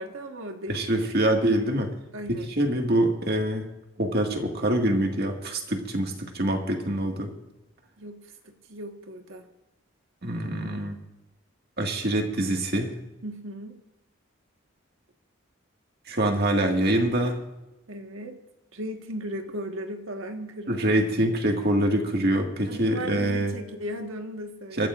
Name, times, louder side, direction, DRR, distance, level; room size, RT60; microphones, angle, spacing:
voice 1, 0.0-0.8 2.1-2.5 8.0-9.5 13.2-13.8 17.9-18.4 18.7-20.9 22.7-24.9, right 1 dB, 75° right, 4 dB, 1.5 m, -36 dB
voice 2, 0.7-1.9 2.3-3.7 4.0-7.3 10.2-11.0 11.8-12.9 16.1-17.4 20.7-23.5 24.8-24.9, right 1 dB, 50° right, 2 dB, 1.9 m, -25 dB
24.5 x 14.0 x 2.6 m, 1.0 s
head